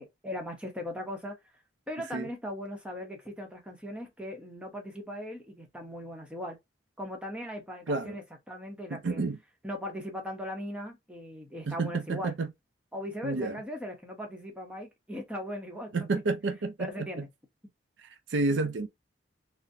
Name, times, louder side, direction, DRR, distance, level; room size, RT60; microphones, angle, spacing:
voice 1, 0.0-1.4 1.9-6.6 7.0-9.2 9.6-12.4 12.9-16.2 16.8-17.3, left 1 dB, 5° right, 0.8 m, -39 dB
voice 2, 8.9-9.4 11.7-12.5 13.2-13.6 15.9-16.7 18.3-18.9, right 3 dB, 70° right, 0.5 m, -29 dB
3.9 x 2.0 x 2.6 m
head